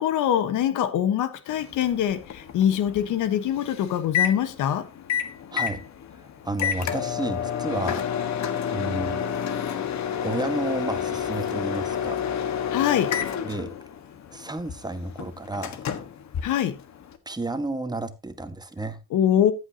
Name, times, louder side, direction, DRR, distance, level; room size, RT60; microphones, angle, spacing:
voice 1, 0.0-4.9 12.7-13.1 16.4-16.8 19.1-19.5, left 10 dB, 85° left, 1.2 m, -23 dB
Microwave oven, 1.5-17.2, left 8 dB, 65° left, 1.4 m, -30 dB
voice 2, 6.1-8.0 8.7-9.2 10.2-12.2 13.4-13.7 14.3-15.8 17.2-19.0, right 2 dB, 15° right, 1.4 m, -31 dB
13.5 x 8.2 x 2.8 m
cardioid pair, 90°, 30 cm